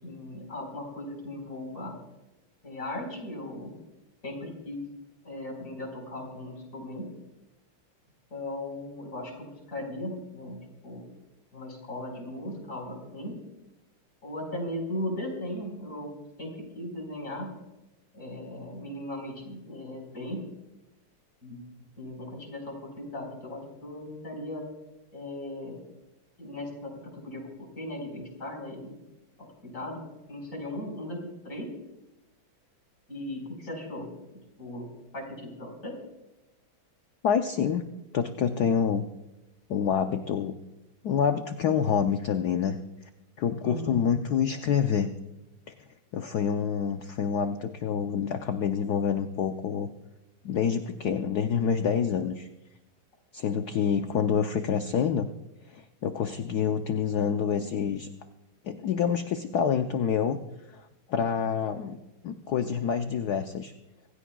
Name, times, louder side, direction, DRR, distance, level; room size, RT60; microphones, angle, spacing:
voice 1, 0.0-2.0 2.6-3.7 4.2-4.8 5.2-7.1 8.3-11.0 11.5-13.4 14.2-16.1 16.4-17.5 18.1-20.4 21.4-21.6 22.0-24.6 25.1-25.8 26.4-26.9 27.2-29.0 29.6-31.2 31.4-31.7 33.1-34.1 34.6-34.9 35.1-35.9 43.6-44.0, left 1 dB, 35° left, 0 dB, 4.7 m, -37 dB
voice 2, 37.2-37.9 38.1-39.1 39.7-40.5 41.0-42.8 43.4-45.1 46.1-49.9 50.4-52.5 53.3-55.3 55.7-58.1 58.6-60.4 60.7-60.8 61.1-62.0 62.2-63.7, left 7 dB, 70° left, 7 dB, 1.0 m, -27 dB
25.5 x 16.0 x 2.3 m, 0.98 s
omnidirectional pair, 2.4 m